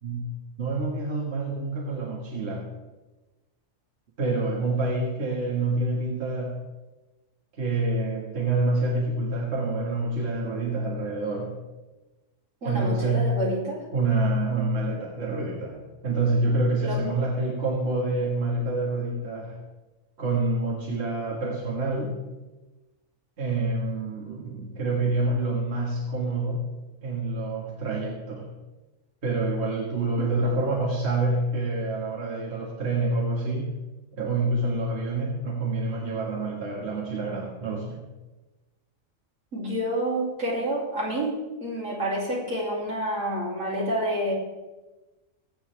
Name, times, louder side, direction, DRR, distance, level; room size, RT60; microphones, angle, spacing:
voice 1, 0.6-2.7 4.2-6.6 7.5-11.6 12.6-13.3 13.9-19.6 20.2-22.2 23.4-26.6 27.0-28.5 29.2-33.7 34.2-38.0, right 2 dB, 55° right, -3 dB, 2.0 m, -27 dB
voice 2, 12.6-13.8 16.8-17.1 39.5-44.3, right 1 dB, 70° right, -4 dB, 3.4 m, -28 dB
21.0 x 8.0 x 3.4 m, 1.1 s
omnidirectional pair, 1.4 m